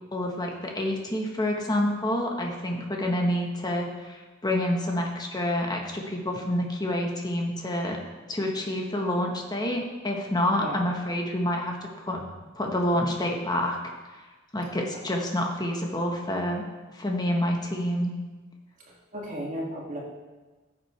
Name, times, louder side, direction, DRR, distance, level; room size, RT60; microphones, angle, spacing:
voice 1, 0.1-8.0 8.3-12.2 12.6-13.8 14.5-16.6 16.9-18.1, left 1 dB, 20° left, 1 dB, 1.3 m, -28 dB
voice 2, 18.9-20.0, equal, 40° right, -4 dB, 2.4 m, -35 dB
14.5 x 7.5 x 3.4 m, 1.3 s
head